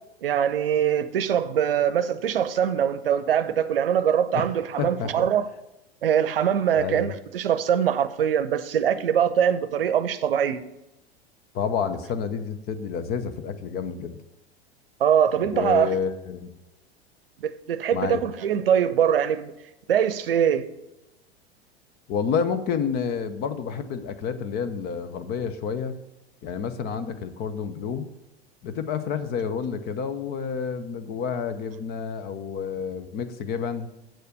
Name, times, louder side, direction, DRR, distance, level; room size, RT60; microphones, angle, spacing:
voice 1, 0.2-5.5 6.0-10.7 15.0-15.9 17.4-19.5 19.9-20.7, right 9 dB, 65° right, 0.7 m, -23 dB
voice 2, 4.8-5.3 6.7-7.1 11.5-14.2 15.5-16.5 17.9-18.2 22.1-26.0 26.4-28.1 28.6-33.9, left 6 dB, 30° left, 0.8 m, -29 dB
7.8 x 6.6 x 6.7 m
figure-of-eight pair, 90°, 31 cm